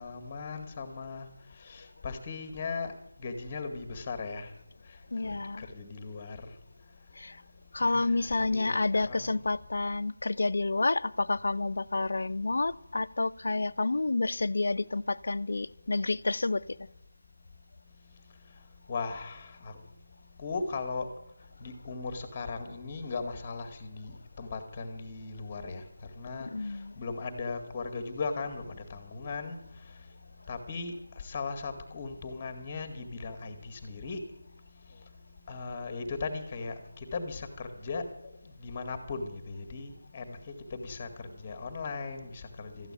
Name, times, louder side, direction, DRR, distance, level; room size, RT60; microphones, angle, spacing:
voice 1, 0.0-4.5 5.2-6.5 7.8-9.4 18.9-19.8 20.4-21.1 21.6-25.8 26.1-30.0 30.5-34.4 34.9-35.0 35.5-42.9, left 4 dB, 25° left, 8 dB, 2.0 m, -38 dB
voice 2, 5.1-5.7 7.2-7.4 7.7-16.6 26.5-27.0, left 3 dB, 60° left, 18 dB, 0.5 m, -29 dB
13.5 x 9.0 x 10.0 m, 0.83 s
figure-of-eight pair, 165°, 0 cm